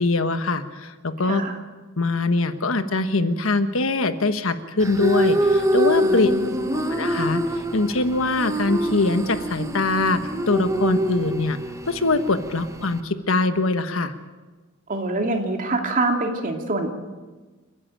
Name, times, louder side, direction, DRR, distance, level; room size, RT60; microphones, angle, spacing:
voice 1, 0.0-1.4 2.0-6.3 6.7-7.4 7.7-11.6 11.9-14.1, left 2 dB, 75° left, 10 dB, 1.3 m, -23 dB
sound 1, 4.8-13.0, equal, 15° right, 1.2 m, -25 dB
voice 2, 6.0-6.7 14.9-16.9, right 2 dB, 40° right, 3 dB, 2.7 m, -25 dB
29.5 x 11.0 x 9.0 m, 1.3 s
head